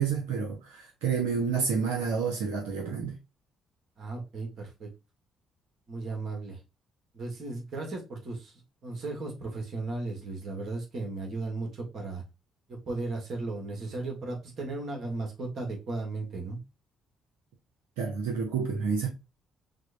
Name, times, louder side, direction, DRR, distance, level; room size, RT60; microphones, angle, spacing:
voice 1, 0.0-3.2 18.0-19.1, right 6 dB, 85° right, 0.8 m, -29 dB
voice 2, 4.0-4.9 5.9-6.6 7.1-8.5 8.8-12.2 12.7-16.6, right 3 dB, 55° right, 1.5 m, -35 dB
6.1 x 2.2 x 2.6 m
hypercardioid pair, 55°, 0 cm